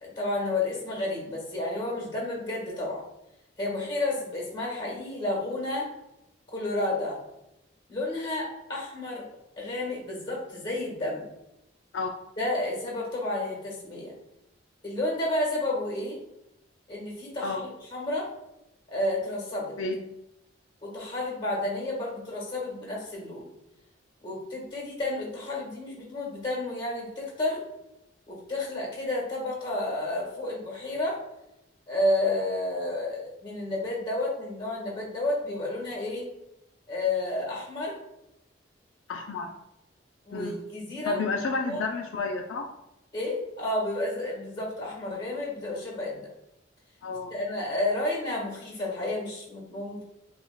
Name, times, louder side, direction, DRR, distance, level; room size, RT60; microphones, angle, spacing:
voice 1, 0.0-3.0 3.6-5.9 6.5-7.2 7.9-9.2 9.6-11.3 12.4-14.1 14.8-16.2 16.9-17.6 17.9-18.3 18.9-19.7 20.8-23.5 24.2-27.6 28.3-31.2 31.9-36.3 36.9-38.0 40.3-41.3 41.7-41.8 43.1-46.3 47.3-50.0, left 2 dB, 25° left, -2 dB, 1.4 m, -31 dB
voice 2, 39.1-39.5 40.3-40.6 41.0-42.7 47.0-47.3, left 4 dB, 80° left, 3 dB, 0.4 m, -31 dB
6.9 x 2.4 x 2.2 m, 0.86 s
head